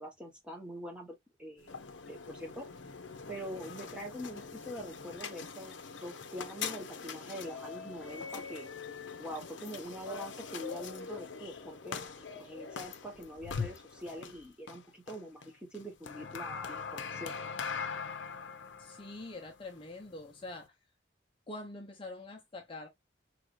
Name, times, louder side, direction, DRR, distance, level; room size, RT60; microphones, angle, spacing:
voice 1, 0.0-1.7 2.1-2.7 3.3-5.8 6.0-8.7 9.2-15.4 15.7-17.3, equal, 5° right, 1.4 m, -44 dB
sound 1, 1.6-20.7, left 5 dB, 75° left, 0.7 m, -42 dB
voice 2, 18.8-20.7 21.5-22.9, left 2 dB, 30° left, 0.7 m, -45 dB
4.8 x 3.3 x 2.5 m
head